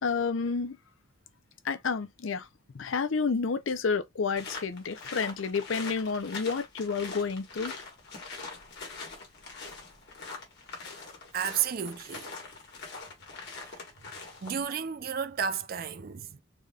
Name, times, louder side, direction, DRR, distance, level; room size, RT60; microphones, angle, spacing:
voice 1, 0.0-0.8 1.6-2.5 2.7-7.7, left 5 dB, 70° left, 0.5 m, -30 dB
sound 1, 4.4-14.7, left 4 dB, 55° left, 1.6 m, -43 dB
voice 2, 11.3-12.3 13.6-13.7 14.4-16.4, right 7 dB, 45° right, 0.4 m, -32 dB
4.0 x 3.3 x 2.3 m
head